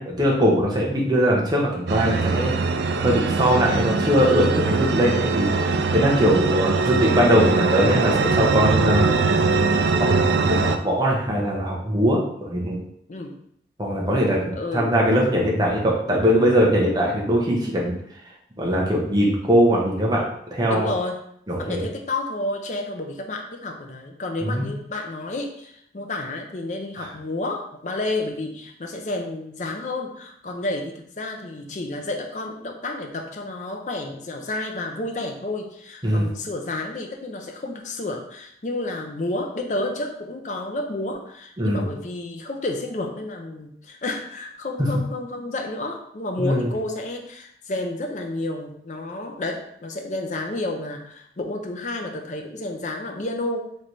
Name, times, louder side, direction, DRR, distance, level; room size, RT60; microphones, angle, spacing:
voice 1, 0.0-2.5 3.0-5.5 5.9-9.1 10.0-10.1 10.4-12.8 13.8-18.0 18.6-20.9 21.5-21.8 24.4-24.7 27.0-27.1 36.0-36.3 41.6-41.8 46.4-46.7, equal, 25° right, -3 dB, 0.9 m, -21 dB
sound 1, 1.9-10.8, right 4 dB, 70° right, 0.3 m, -22 dB
voice 2, 14.6-14.9 20.7-21.2 21.6-53.7, left 2 dB, 40° left, 2 dB, 0.5 m, -30 dB
3.2 x 3.1 x 4.0 m, 0.69 s
head